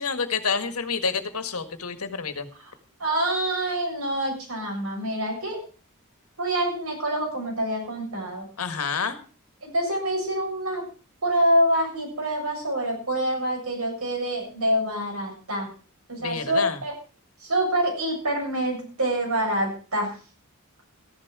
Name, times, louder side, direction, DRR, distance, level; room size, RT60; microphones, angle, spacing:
voice 1, 0.0-2.5 8.6-9.2 16.2-16.8, left 5 dB, 80° left, 9 dB, 1.7 m, -28 dB
voice 2, 3.0-5.6 6.4-8.5 9.6-10.8 11.2-15.7 16.1-16.9 17.4-20.2, right 1 dB, 80° right, 0 dB, 7.3 m, -26 dB
14.0 x 11.0 x 4.8 m, 0.37 s
head